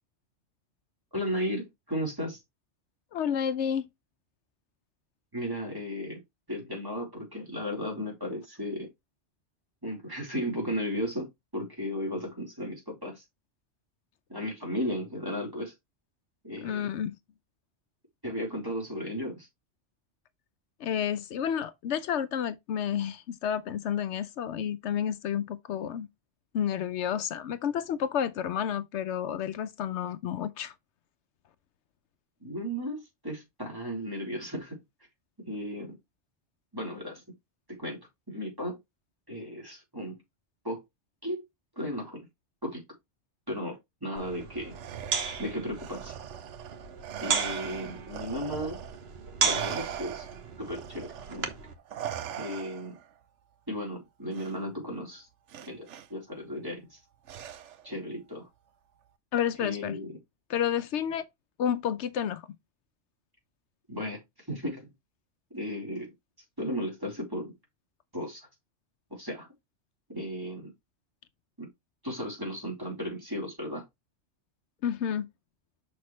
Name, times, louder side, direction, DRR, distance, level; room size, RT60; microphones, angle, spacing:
voice 1, 1.1-2.4 5.3-6.2 6.5-8.9 9.8-13.2 14.3-15.7 16.4-16.9 18.2-19.5 32.4-34.8 35.4-36.0 36.7-37.2 37.7-38.0 38.3-38.8 39.3-40.2 40.6-40.8 41.2-41.4 41.8-42.3 42.6-42.8 43.5-44.7 45.4-46.2 47.2-48.8 49.4-50.3 50.6-51.5 52.4-53.0 53.7-55.3 55.7-57.0 57.8-58.5 59.6-60.2 63.9-64.2 64.5-64.9 65.5-66.1 66.6-67.5 68.1-68.4 69.1-69.5 70.1-70.7 71.6-71.7 72.0-73.8, equal, 20° right, 3.9 m, -35 dB
voice 2, 3.1-3.9 16.6-17.1 20.8-26.1 26.5-30.7 59.3-60.0 60.5-61.3 61.6-62.4 74.8-75.3, left 9 dB, 80° left, 0.9 m, -30 dB
sound 1, 44.2-51.7, right 5 dB, 60° right, 1.4 m, -35 dB
Respiratory sounds, 44.7-49.1 49.4-53.1 54.3-54.5 55.5-56.1 57.3-57.9, right 10 dB, 85° right, 1.0 m, -40 dB
6.9 x 6.2 x 3.1 m
omnidirectional pair, 1.2 m